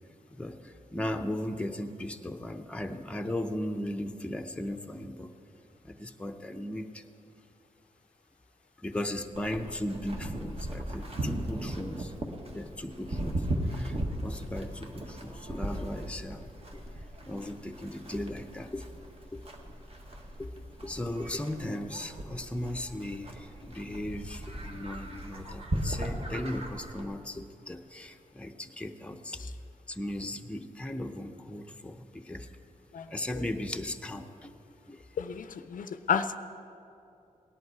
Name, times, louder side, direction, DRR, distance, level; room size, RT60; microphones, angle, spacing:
voice 1, 0.3-5.3 5.8-7.0 8.8-12.1 12.5-13.4 13.7-16.8 17.2-18.9 19.3-19.4 20.4-20.5 20.8-29.4 29.9-32.5 33.1-34.5 34.9-35.0, left 1 dB, 10° left, 5 dB, 0.6 m, -37 dB
Livestock farm animals working animals, 9.3-27.0, right 1 dB, 45° right, 1.4 m, -38 dB
voice 2, 35.2-36.4, left 7 dB, 70° left, 10 dB, 0.5 m, -31 dB
18.0 x 11.0 x 4.7 m, 2.7 s
wide cardioid pair, 115°, 14 cm